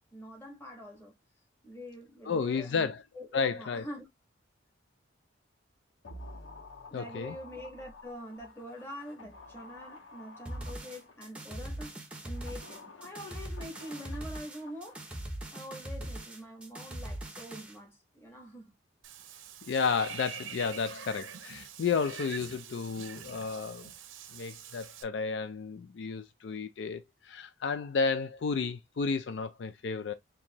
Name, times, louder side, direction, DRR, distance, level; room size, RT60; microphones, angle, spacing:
voice 1, 0.1-1.1 1.6-2.9 3.1-4.1 6.9-15.0 15.5-18.7, equal, 10° left, 1.3 m, -45 dB
voice 2, 2.3-3.0 3.3-3.8 6.9-7.4 19.6-23.9 24.3-30.1, left 5 dB, 65° left, 0.3 m, -32 dB
sound 1, 6.0-11.5 12.1-15.4 15.6-15.7, left 2 dB, 85° left, 1.4 m, -51 dB
sound 2, 10.5-17.8, right 1 dB, 5° right, 0.7 m, -41 dB
Water / Bathtub (filling or washing), 19.0-25.0, right 8 dB, 85° right, 0.6 m, -45 dB
4.5 x 2.7 x 2.8 m
head